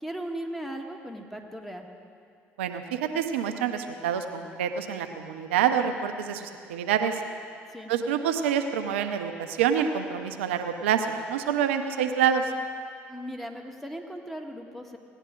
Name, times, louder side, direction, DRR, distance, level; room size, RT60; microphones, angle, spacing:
voice 1, 0.0-1.9 7.7-7.9 13.1-15.0, right 1 dB, 5° left, 2 dB, 1.6 m, -37 dB
voice 2, 2.6-7.2 7.9-12.5, right 8 dB, 90° right, 7 dB, 0.6 m, -27 dB
18.0 x 10.0 x 3.8 m, 2.3 s
hypercardioid pair, 60°, 6 cm